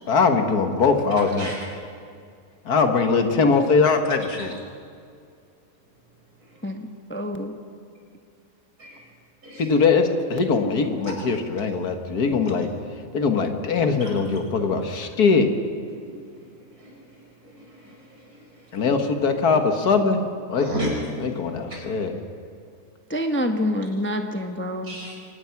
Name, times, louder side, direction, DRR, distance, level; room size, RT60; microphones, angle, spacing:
voice 1, 0.1-1.5 2.7-4.5 9.6-12.7 13.1-15.5 18.7-20.2 20.5-20.7 21.2-22.1, left 4 dB, 75° left, 6 dB, 2.0 m, -21 dB
voice 2, 1.2-1.6 4.4-4.5 6.4-6.7 8.8-9.0 9.4-9.7 11.0-11.1 14.0-14.1 15.9-18.9 20.5-21.3 24.8-25.2, equal, 70° right, -3 dB, 5.9 m, -35 dB
voice 3, 6.6-7.5 23.1-25.0, left 1 dB, 10° left, 5 dB, 1.0 m, -27 dB
24.0 x 19.5 x 5.9 m, 2.4 s
omnidirectional pair, 1.6 m